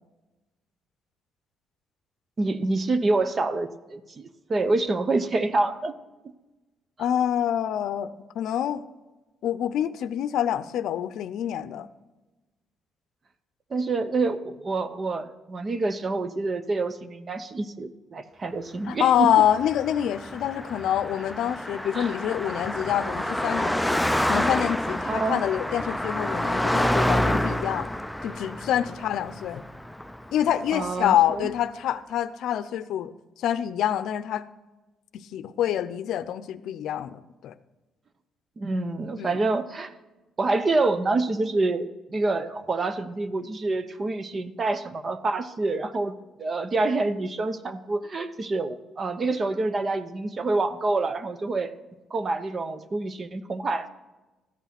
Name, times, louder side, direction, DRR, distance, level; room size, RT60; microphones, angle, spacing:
voice 1, 2.4-5.9 13.7-19.3 21.9-22.1 25.1-25.4 30.7-31.5 38.6-39.9 40.4-46.1 46.4-51.7 52.1-53.9, right 3 dB, 35° right, 12 dB, 0.8 m, -27 dB
voice 2, 7.0-8.9 9.4-11.9 18.9-27.9 28.2-29.6 30.3-34.5 35.1-37.5 39.2-39.4, left 10 dB, 75° left, 13 dB, 0.6 m, -26 dB
Car passing by, 19.3-30.9, left 1 dB, 5° left, 0.4 m, -28 dB
13.5 x 8.2 x 5.9 m, 1.1 s
cardioid pair, 105°, 0 cm